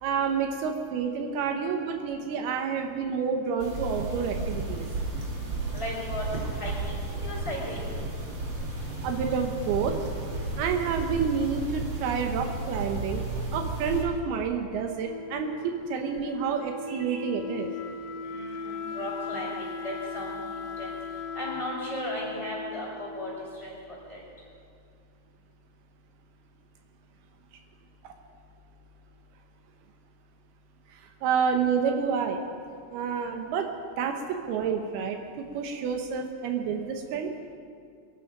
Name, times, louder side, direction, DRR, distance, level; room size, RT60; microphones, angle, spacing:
voice 1, 0.0-4.9 9.0-10.0 10.6-13.2 13.5-17.7 28.0-28.1 30.9-32.4 32.9-33.7 34.0-37.3, right 6 dB, 80° right, 4 dB, 2.8 m, -29 dB
sound 1, 3.6-14.0, right 2 dB, 35° right, 2.6 m, -33 dB
voice 2, 5.7-6.9 7.2-7.8 18.2-20.4 20.8-20.9 21.3-23.7 24.1-24.2, left 1 dB, 10° left, -6 dB, 4.8 m, -36 dB
Wind instrument woodwind instrument, 15.0-23.8, left 4 dB, 75° left, 2.2 m, -38 dB
22.5 x 12.0 x 5.3 m, 2.3 s
omnidirectional pair, 4.6 m